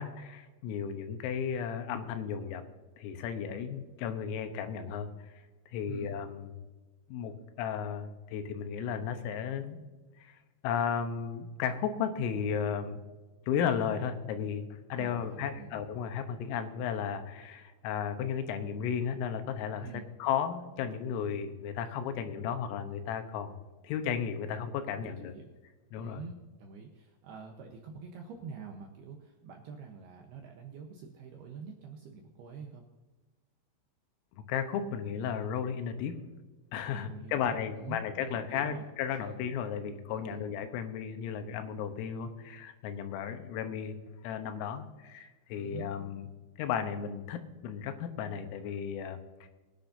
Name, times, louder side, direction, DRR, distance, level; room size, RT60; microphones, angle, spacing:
voice 1, 0.0-2.6 3.0-5.4 5.7-6.5 7.1-9.8 10.2-10.4 10.6-13.0 13.5-19.9 20.2-23.6 23.8-25.3 25.9-26.2 34.5-36.2 36.7-44.0 44.2-46.2 46.6-49.5, left 7 dB, 90° left, 7 dB, 3.7 m, -34 dB
voice 2, 15.0-15.7 19.8-20.1 25.0-25.5 26.0-32.8 36.9-38.8 39.2-39.3 40.1-40.4 45.6-45.9, right 5 dB, 75° right, 2 dB, 2.4 m, -46 dB
22.5 x 10.0 x 2.7 m, 1.2 s
omnidirectional pair, 5.8 m